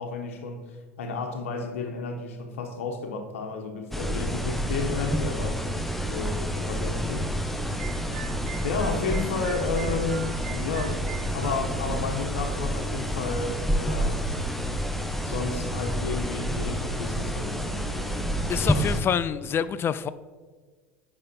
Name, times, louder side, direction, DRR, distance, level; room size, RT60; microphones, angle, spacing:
voice 1, 0.0-5.7 6.1-7.5 8.6-14.3 15.2-19.0, left 4 dB, 80° left, 1.1 m, -32 dB
sound 1, 3.9-19.0, equal, ahead, 0.7 m, -29 dB
sound 2, 7.8-11.6, right 11 dB, 85° right, 0.7 m, -43 dB
voice 2, 18.5-20.1, left 8 dB, 35° left, 0.4 m, -27 dB
8.7 x 5.3 x 4.4 m
hypercardioid pair, 85°, 7 cm